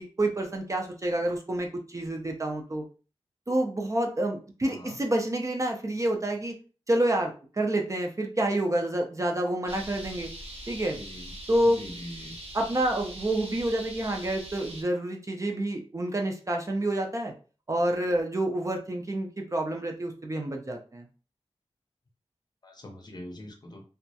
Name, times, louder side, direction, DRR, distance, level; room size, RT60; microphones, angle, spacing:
voice 1, 0.0-2.8 3.5-6.5 6.9-10.3 10.7-11.0 11.5-11.8 12.5-17.3 17.7-21.1, right 1 dB, 30° right, 2 dB, 0.4 m, -28 dB
voice 2, 4.6-5.0 10.9-11.3 11.6-12.4 22.6-23.8, left 1 dB, 40° left, 2 dB, 0.6 m, -43 dB
sound 1, 9.7-14.8, right 1 dB, 70° right, 0.9 m, -42 dB
2.2 x 2.0 x 2.7 m, 0.36 s
wide cardioid pair, 90°, 11 cm